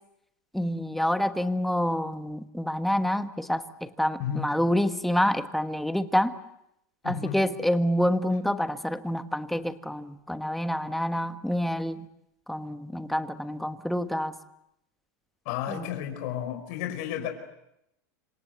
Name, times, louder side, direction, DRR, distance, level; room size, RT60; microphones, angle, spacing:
voice 1, 0.5-6.3 7.0-12.1 12.5-14.3 15.7-15.9, equal, ahead, 9 dB, 1.4 m, -27 dB
voice 2, 4.2-4.5 7.0-7.4 15.4-17.3, left 9 dB, 60° left, 5 dB, 4.8 m, -32 dB
27.0 x 27.0 x 8.2 m, 0.81 s
supercardioid pair, 135°, 9 cm